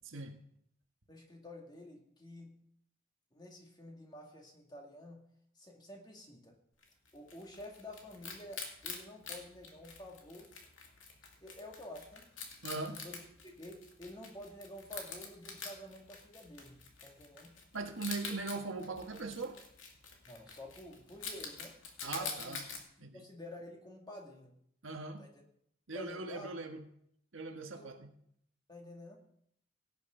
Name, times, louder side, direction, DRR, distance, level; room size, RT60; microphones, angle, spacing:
voice 1, 0.0-0.4 12.6-13.0 17.7-19.6 22.0-22.6 23.0-23.2 24.8-25.3 25.9-26.8 27.3-28.1, right 3 dB, 90° right, 4 dB, 1.6 m, -40 dB
voice 2, 1.1-2.5 3.3-5.2 5.6-6.6 7.1-10.5 11.4-12.2 12.8-17.5 20.3-21.7 22.0-22.6 23.1-24.5 25.2-25.3 25.9-26.5 27.8-27.9 28.7-29.2, left 1 dB, 20° left, 0 dB, 2.3 m, -50 dB
Wild animals, 6.8-22.8, left 5 dB, 80° left, 2.4 m, -47 dB
17.0 x 9.3 x 3.9 m, 0.68 s
head